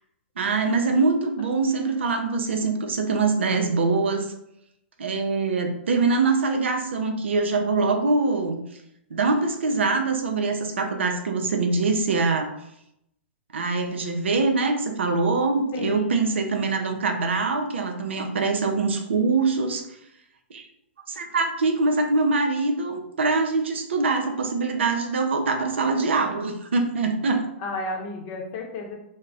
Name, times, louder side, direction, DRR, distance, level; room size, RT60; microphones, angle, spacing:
voice 1, 0.4-4.3 5.0-8.6 9.1-12.5 13.5-19.9 20.5-20.7 21.1-27.4, right 3 dB, 80° right, 5 dB, 0.4 m, -23 dB
voice 2, 15.7-16.2 27.6-28.9, left 2 dB, 40° left, 1 dB, 0.7 m, -33 dB
2.2 x 2.1 x 3.7 m, 0.79 s
hypercardioid pair, 120°, 6 cm